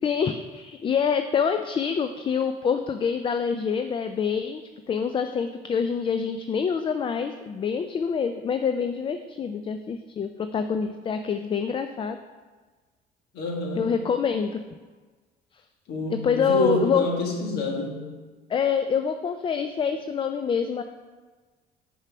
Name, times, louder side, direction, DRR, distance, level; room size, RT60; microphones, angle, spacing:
voice 1, 0.0-4.6 4.9-12.2 13.8-14.6 16.1-17.1 18.5-20.8, left 6 dB, 30° left, 8 dB, 0.4 m, -26 dB
voice 2, 13.3-13.9 15.9-18.1, left 1 dB, 75° left, 1 dB, 1.6 m, -27 dB
6.5 x 4.7 x 6.0 m, 1.4 s
cardioid pair, 110°, 17 cm